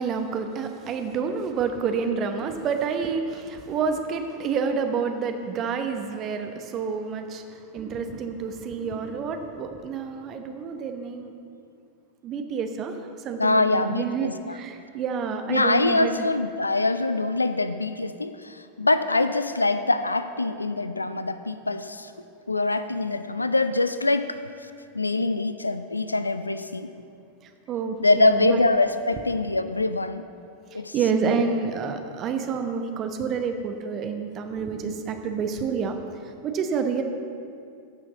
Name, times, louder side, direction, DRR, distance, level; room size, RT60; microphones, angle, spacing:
voice 1, 0.0-11.3 12.2-12.9 13.2-16.1 27.7-28.6 30.7-36.0 36.4-37.0, right 6 dB, 30° right, 6 dB, 0.9 m, -28 dB
voice 2, 13.4-14.6 15.5-22.1 22.5-24.7 24.9-26.9 28.0-30.2 30.7-30.9 31.3-31.4, left 2 dB, 80° left, 11 dB, 0.4 m, -24 dB
15.0 x 6.3 x 4.0 m, 2.4 s
figure-of-eight pair, 90°, 0 cm